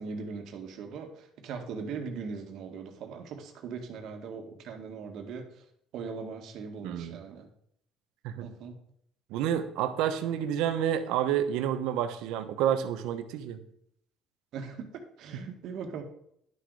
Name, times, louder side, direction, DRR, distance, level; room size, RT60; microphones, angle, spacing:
voice 1, 0.0-5.6 5.9-7.5 8.4-8.8 14.5-16.0, right 5 dB, 65° right, 5 dB, 1.8 m, -40 dB
voice 2, 6.8-7.2 8.2-8.5 9.3-13.6, right 10 dB, 90° right, 10 dB, 1.1 m, -29 dB
11.0 x 6.6 x 4.8 m, 0.70 s
cardioid pair, 125°, 0 cm